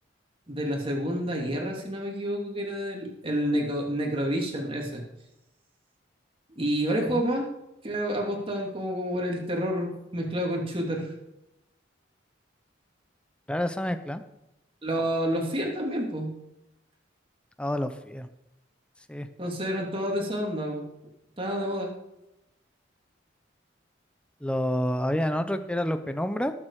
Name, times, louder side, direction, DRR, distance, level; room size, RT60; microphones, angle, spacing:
voice 1, 0.5-5.0 6.6-7.5 7.8-11.1 14.8-16.3 19.4-20.8 21.4-21.9, equal, 30° right, 0 dB, 2.8 m, -29 dB
voice 2, 13.5-14.2 17.6-18.3 19.1-19.3 24.4-26.5, equal, 5° left, 9 dB, 0.8 m, -28 dB
19.0 x 7.6 x 4.9 m, 0.90 s
head